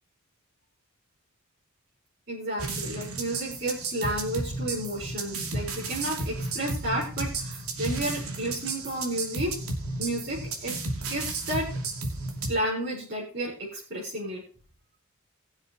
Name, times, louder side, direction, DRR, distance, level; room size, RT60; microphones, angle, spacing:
voice 1, 2.3-9.6 10.0-10.8 11.0-11.7 12.5-14.4, right 1 dB, 50° right, -7 dB, 4.6 m, -32 dB
sound 1, 2.6-12.5, right 3 dB, 85° right, 2.8 m, -33 dB
20.5 x 7.4 x 3.1 m, 0.38 s
head